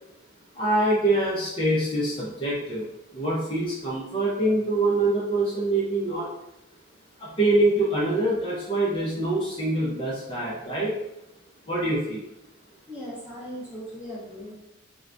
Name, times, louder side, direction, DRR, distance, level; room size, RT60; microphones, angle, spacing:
voice 1, 0.6-2.8 3.1-6.2 7.2-10.9 11.7-12.2, right 2 dB, 25° left, -6 dB, 0.6 m, -24 dB
voice 2, 12.9-14.5, equal, 5° right, -6 dB, 0.9 m, -38 dB
4.5 x 2.2 x 2.5 m, 0.89 s
head